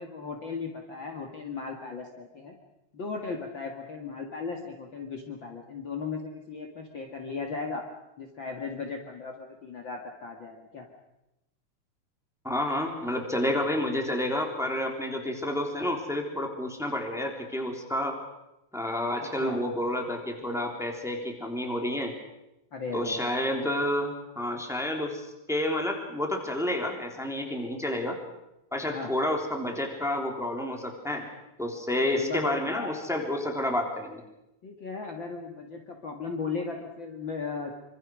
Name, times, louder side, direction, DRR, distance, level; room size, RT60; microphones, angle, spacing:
voice 1, 0.0-2.6 2.9-7.8 8.2-10.9 19.2-19.6 22.7-23.3 28.9-29.1 32.1-33.0 34.6-37.7, left 4 dB, 40° left, 2 dB, 2.4 m, -37 dB
voice 2, 12.4-18.2 18.7-22.1 22.9-28.2 28.7-31.3 31.6-34.2, left 1 dB, ahead, 2 dB, 3.0 m, -30 dB
25.5 x 25.5 x 6.3 m, 0.90 s
omnidirectional pair, 3.6 m